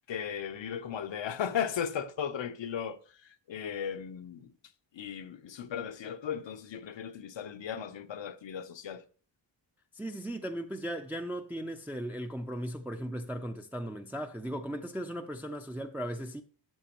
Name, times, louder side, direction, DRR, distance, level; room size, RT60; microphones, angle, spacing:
voice 1, 0.1-4.5 4.9-9.0, left 8 dB, 80° left, 0.9 m, -36 dB
voice 2, 9.9-16.4, equal, 5° right, 0.4 m, -37 dB
12.0 x 7.1 x 3.0 m
wide cardioid pair, 140°, 44 cm